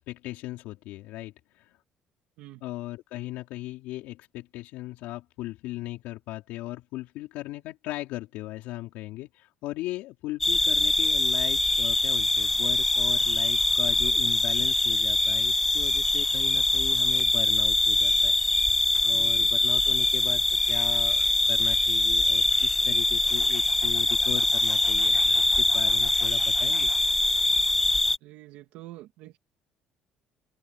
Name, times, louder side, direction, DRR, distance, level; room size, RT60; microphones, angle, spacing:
voice 1, 0.0-1.8 2.6-18.3 19.0-26.9, left 17 dB, 80° left, 4.7 m, -38 dB
sound 1, 10.4-28.2, left 2 dB, 10° left, 0.4 m, -23 dB
voice 2, 19.1-19.5 28.2-29.4, right 16 dB, 80° right, 2.5 m, -46 dB
cardioid pair, 175°, 3 cm